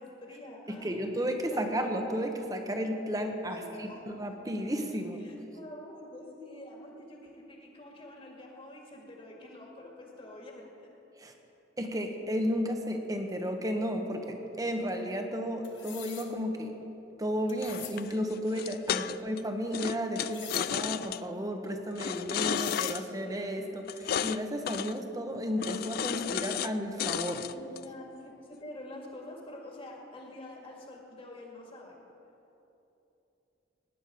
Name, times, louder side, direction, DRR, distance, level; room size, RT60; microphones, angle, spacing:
voice 1, 0.0-1.1 1.5-1.8 3.5-4.0 5.2-10.9 18.8-19.1 27.2-31.9, left 1 dB, 30° left, 0 dB, 2.1 m, -47 dB
voice 2, 0.7-5.2 11.2-11.3 11.8-16.7 17.2-27.4, equal, 20° right, 4 dB, 1.1 m, -33 dB
sound 1, 15.6-16.3 17.5-18.0 20.3-20.6 22.1-22.2 22.5-23.0, left 10 dB, 75° left, 1.4 m, -42 dB
sound 2, 17.6-19.4 19.7-21.2 22.0-23.0 23.9-24.4 24.7-25.0 25.6-26.7 27.0-27.8, left 9 dB, 50° left, 0.3 m, -33 dB
18.0 x 10.0 x 5.1 m, 3.0 s
head